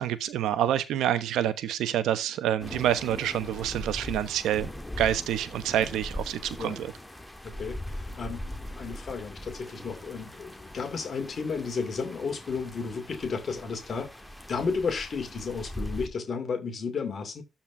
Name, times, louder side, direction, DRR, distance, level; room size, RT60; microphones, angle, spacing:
voice 1, 0.0-4.7 5.0-6.9, right 11 dB, 85° right, 1.0 m, -27 dB
sound 1, 2.6-16.1, left 1 dB, 5° left, 1.6 m, -40 dB
voice 2, 7.4-14.1 14.5-17.4, left 5 dB, 50° left, 2.5 m, -33 dB
12.0 x 4.5 x 3.4 m
cardioid pair, 90°, 0 cm